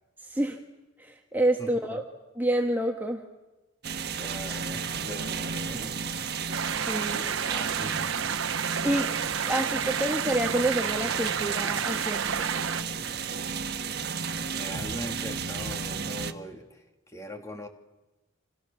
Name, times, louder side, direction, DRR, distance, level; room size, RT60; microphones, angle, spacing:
voice 1, 0.2-0.6 1.0-2.0 2.3-3.2 6.8-7.3 8.8-9.1 9.5-12.5, right 1 dB, 10° right, 3 dB, 1.5 m, -28 dB
voice 2, 1.6-2.0 4.2-5.9 7.1-7.2 7.5-8.0 14.4-17.7, left 1 dB, 15° left, 4 dB, 2.9 m, -41 dB
sound 1, 3.8-16.3, right 6 dB, 55° right, 1.5 m, -33 dB
sound 2, 6.5-12.8, right 7 dB, 90° right, 0.9 m, -31 dB
30.0 x 27.0 x 7.1 m, 1.1 s
head